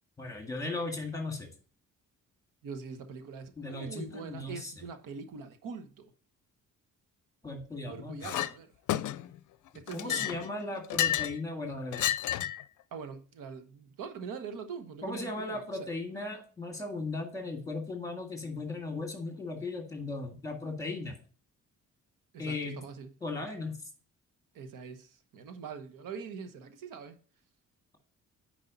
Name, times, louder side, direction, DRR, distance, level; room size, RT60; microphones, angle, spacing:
voice 1, 0.2-1.5 3.6-4.7 7.4-8.4 9.9-12.1 15.0-21.1 22.4-22.8 23.2-23.8, left 2 dB, 10° left, 1.9 m, -37 dB
voice 2, 2.6-6.1 7.9-8.7 9.7-10.3 12.9-15.6 22.3-23.1 24.5-27.2, right 5 dB, 90° right, 1.2 m, -43 dB
Chink clink, 8.2-8.5 8.9-9.4 9.9-11.4 11.9-12.6, left 13 dB, 70° left, 0.5 m, -31 dB
9.7 x 4.8 x 4.0 m
cardioid pair, 160°, 31 cm